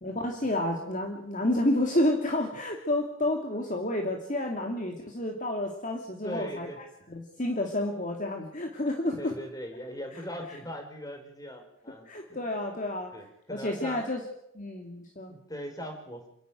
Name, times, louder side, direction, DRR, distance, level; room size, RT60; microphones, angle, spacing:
voice 1, 0.0-6.7 7.1-9.4 12.1-13.1 13.5-14.2 14.5-15.3, left 1 dB, 40° left, 2 dB, 2.6 m, -30 dB
voice 2, 6.2-6.8 9.2-12.5 13.1-14.1 15.3-16.3, equal, 15° left, 4 dB, 4.4 m, -40 dB
28.0 x 11.5 x 9.3 m, 0.76 s
head